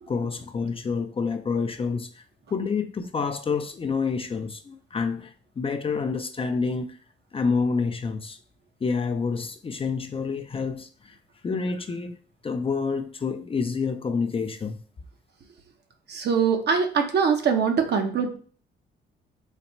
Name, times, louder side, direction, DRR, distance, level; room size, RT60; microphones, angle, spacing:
voice 1, 0.1-2.2 2.5-7.0 7.3-8.4 8.8-11.2 11.4-12.2 12.4-14.8, left 5 dB, 30° left, 0.5 m, -28 dB
voice 2, 16.1-18.4, right 6 dB, 55° right, 0.9 m, -23 dB
4.0 x 2.1 x 4.3 m
cardioid pair, 90°, 20 cm